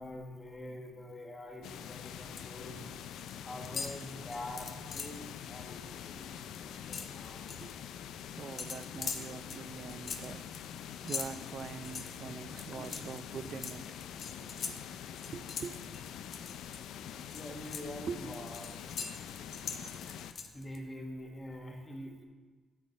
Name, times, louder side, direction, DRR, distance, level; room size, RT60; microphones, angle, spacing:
voice 1, 0.0-7.5 12.2-12.9 16.9-17.0 17.3-22.2, left 1 dB, 25° left, 1 dB, 1.4 m, -46 dB
sound 1, 1.6-20.3, left 9 dB, 80° left, 0.4 m, -45 dB
sound 2, 1.9-2.6 2.9-3.3 3.6-5.2 5.6-5.8 6.1-7.7 8.6-16.8 17.2-20.8, left 5 dB, 50° left, 0.7 m, -42 dB
voice 2, 7.4-7.7 8.4-14.0 14.4-14.8 15.3-15.8 18.0-18.5, right 6 dB, 55° right, 13 dB, 0.4 m, -44 dB
9.1 x 6.3 x 4.2 m, 1.4 s
cardioid pair, 90°, 0 cm